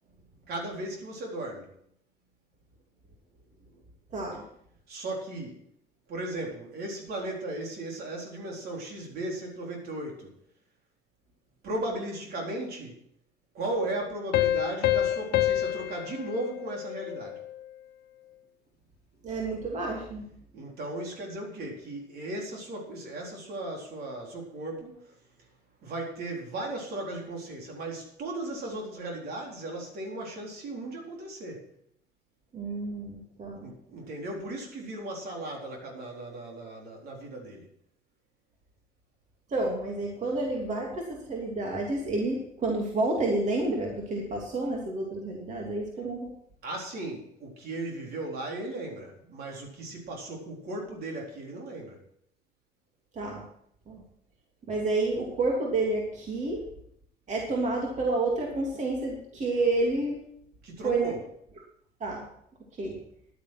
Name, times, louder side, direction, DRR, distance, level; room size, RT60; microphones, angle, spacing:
voice 1, 0.5-1.7 4.9-5.6 6.1-10.4 11.6-13.0 13.5-17.4 20.5-25.5 25.8-31.7 33.6-37.7 46.6-52.0 60.6-61.2, right 1 dB, 65° right, 0 dB, 4.0 m, -36 dB
voice 2, 4.1-4.4 19.2-20.2 32.5-33.7 39.5-46.3 53.1-53.4 53.9-54.0 54.7-56.6 57.3-60.2 60.8-61.1 62.0-62.2 62.8-62.9, right 2 dB, 45° right, 0 dB, 2.9 m, -29 dB
Piano, 14.3-17.6, left 13 dB, 75° left, 1.0 m, -28 dB
11.0 x 9.2 x 6.2 m, 0.69 s
cardioid pair, 110°, 17 cm